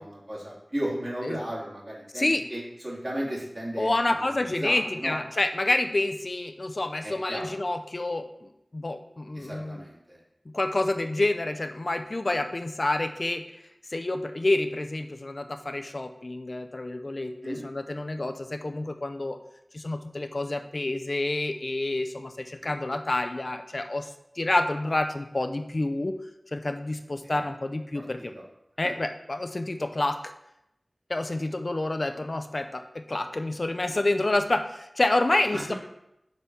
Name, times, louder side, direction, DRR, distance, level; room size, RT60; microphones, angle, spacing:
voice 1, 0.0-3.9 4.1-5.2 7.0-7.5 9.3-10.2 17.4-17.6 22.6-22.7 27.2-27.4 28.2-28.3 28.8-28.9 35.5-35.8, right 1 dB, 45° right, -6 dB, 2.9 m, -35 dB
voice 2, 3.8-9.8 10.5-13.4 13.9-19.4 19.7-24.1 24.4-26.1 26.5-28.3 28.8-30.3 31.1-35.7, left 2 dB, 60° left, 7 dB, 0.5 m, -28 dB
6.3 x 3.9 x 5.5 m, 0.82 s
wide cardioid pair, 45°, 0 cm